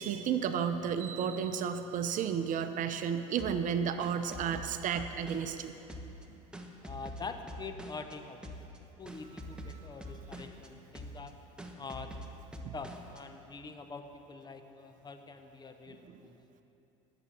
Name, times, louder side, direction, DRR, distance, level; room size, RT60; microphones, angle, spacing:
voice 1, 0.0-5.7 6.3-6.4 9.7-9.9 12.6-12.7, right 7 dB, 50° right, 9 dB, 0.7 m, -32 dB
sound 1, 3.4-5.6 5.9-8.1 8.4-8.8 9.1-10.7 10.9-11.3 11.6-13.2, equal, 5° right, 1.1 m, -45 dB
voice 2, 6.8-8.5 9.0-11.3 11.7-12.1 12.7-16.4, left 4 dB, 25° left, 7 dB, 0.9 m, -45 dB
11.0 x 7.2 x 7.6 m, 2.9 s
supercardioid pair, 85°, 17 cm